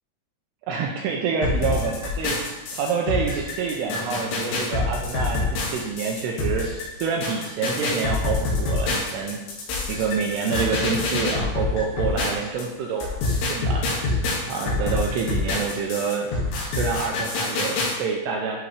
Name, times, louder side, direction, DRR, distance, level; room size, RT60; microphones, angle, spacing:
voice 1, 0.7-2.4 2.7-6.7 7.0-9.4 9.9-13.2 13.5-14.2 14.5-18.6, right 5 dB, 85° right, 0 dB, 2.4 m, -27 dB
sound 1, 1.4-12.6 13.0-17.9, left 3 dB, 70° left, 4.0 m, -26 dB
11.5 x 5.2 x 3.3 m, 1.0 s
omnidirectional pair, 5.5 m